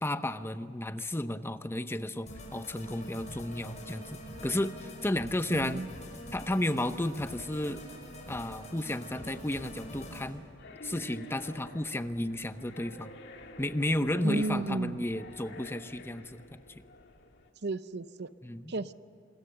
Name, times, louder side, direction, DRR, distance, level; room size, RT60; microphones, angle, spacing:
voice 1, 0.0-5.8 6.3-7.8 8.3-10.4 10.8-13.1 13.6-16.4 18.4-18.7, left 1 dB, 10° left, 11 dB, 0.7 m, -33 dB
sound 1, 2.3-10.3, equal, 35° left, 5.8 m, -45 dB
voice 2, 5.5-5.9 14.2-15.0 17.6-18.3 18.7-18.9, right 2 dB, 55° right, 14 dB, 0.7 m, -33 dB
sound 2, 9.9-17.5, left 1 dB, 60° left, 2.1 m, -49 dB
27.5 x 21.0 x 6.9 m, 2.8 s
head